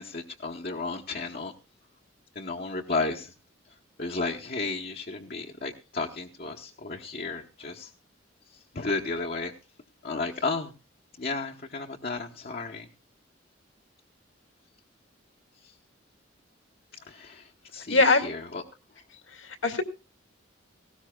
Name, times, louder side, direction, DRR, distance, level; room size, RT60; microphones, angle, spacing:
voice 1, 0.0-1.5 2.3-3.3 4.0-7.9 8.7-9.5 10.0-10.7 11.2-12.9 15.6-15.7 17.1-18.6, left 3 dB, 45° left, 1 dB, 1.0 m, -33 dB
voice 2, 17.9-18.3 19.3-19.8, left 3 dB, 80° left, 7 dB, 2.1 m, -22 dB
19.0 x 17.0 x 2.3 m, 0.31 s
head